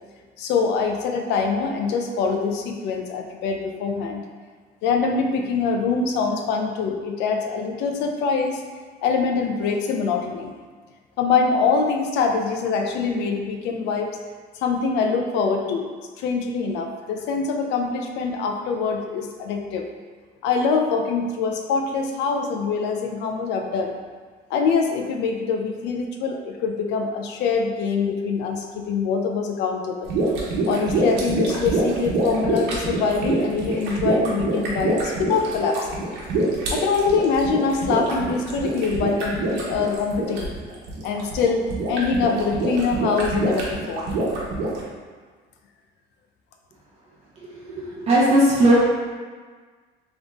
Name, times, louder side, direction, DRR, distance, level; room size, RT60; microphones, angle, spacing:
voice 1, 0.4-4.2 4.8-8.6 9.0-10.5 11.2-14.1 14.5-15.9 16.2-19.8 20.4-23.9 24.5-30.1 30.7-36.1 36.7-40.5 41.0-44.1, left 5 dB, 90° left, 3 dB, 0.6 m, -24 dB
sound 1, 30.0-44.8, right 2 dB, 80° right, 1.1 m, -25 dB
voice 2, 47.5-48.7, right 1 dB, 35° right, -7 dB, 0.8 m, -18 dB
3.6 x 3.6 x 3.5 m, 1.5 s
cardioid pair, 170°, 17 cm